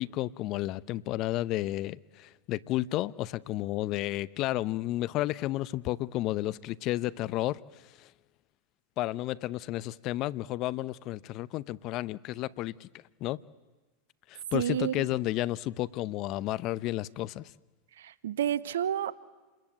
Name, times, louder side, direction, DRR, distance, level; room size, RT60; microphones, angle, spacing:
voice 1, 0.0-7.6 8.0-8.1 9.0-12.9 13.2-13.4 14.3-17.5, left 16 dB, 50° left, 19 dB, 0.8 m, -32 dB
voice 2, 14.5-15.0 18.0-19.2, right 10 dB, 80° right, 18 dB, 1.0 m, -30 dB
28.5 x 21.0 x 9.1 m, 1.2 s
hypercardioid pair, 95°, 0 cm